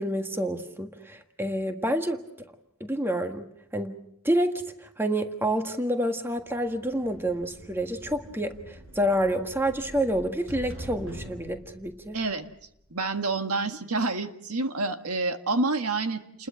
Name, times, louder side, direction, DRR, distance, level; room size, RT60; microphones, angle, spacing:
voice 1, 0.0-2.2 2.8-4.0 4.2-12.2, right 1 dB, 10° right, 6 dB, 1.5 m, -28 dB
sound 1, 6.4-13.1, equal, 60° right, 6.1 m, -45 dB
voice 2, 12.1-12.4 12.9-16.5, right 3 dB, 85° right, 7 dB, 1.7 m, -28 dB
30.0 x 21.0 x 6.3 m, 0.76 s
head